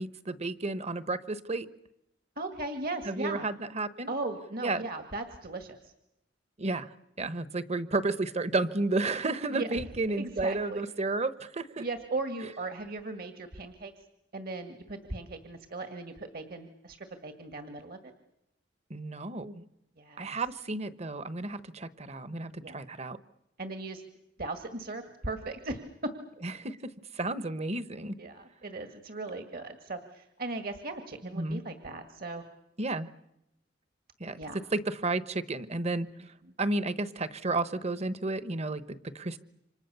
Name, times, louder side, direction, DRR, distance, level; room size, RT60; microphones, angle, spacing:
voice 1, 0.0-1.7 3.0-4.1 4.6-4.8 6.6-6.9 7.2-11.9 18.9-19.6 20.2-23.2 26.4-28.1 31.3-31.6 32.8-33.1 34.2-34.4 34.7-36.1 36.6-39.4, right 2 dB, 35° right, 14 dB, 1.1 m, -32 dB
voice 2, 2.4-3.5 4.1-5.9 9.5-9.8 10.2-10.8 11.8-13.9 14.3-18.1 20.0-20.3 22.6-22.8 23.6-24.0 24.4-26.1 28.2-32.4 34.4-34.6 36.4-36.5, right 2 dB, 55° right, 7 dB, 2.0 m, -38 dB
29.0 x 26.0 x 6.9 m, 0.84 s
head